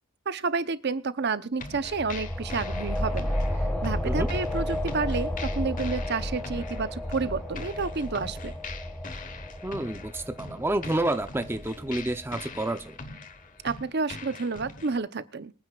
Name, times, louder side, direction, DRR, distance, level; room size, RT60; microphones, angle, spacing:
voice 1, 0.3-3.3 3.6-8.5 13.6-15.5, right 4 dB, 55° right, 12 dB, 0.8 m, -30 dB
sound 1, 1.6-15.0, left 3 dB, 40° left, 1.3 m, -43 dB
sound 2, 1.6-12.8, left 1 dB, 10° left, 1.6 m, -32 dB
voice 2, 9.6-13.0, right 1 dB, 10° right, 8 dB, 0.7 m, -29 dB
24.5 x 9.7 x 2.4 m, 0.29 s
head